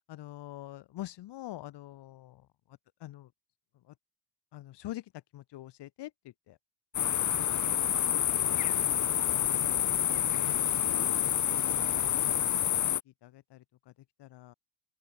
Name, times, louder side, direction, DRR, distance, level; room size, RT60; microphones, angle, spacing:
voice 1, 0.1-2.5 3.0-3.3 3.9-4.0 4.5-5.0 5.3-6.6 8.3-8.5 9.3-9.9 10.3-12.5 13.2-13.9 14.2-14.5, left 15 dB, 60° left, 6.8 m, -46 dB
sound 1, 6.9-13.0, left 10 dB, 40° left, 1.7 m, -28 dB
open air
cardioid pair, 130°, 45 cm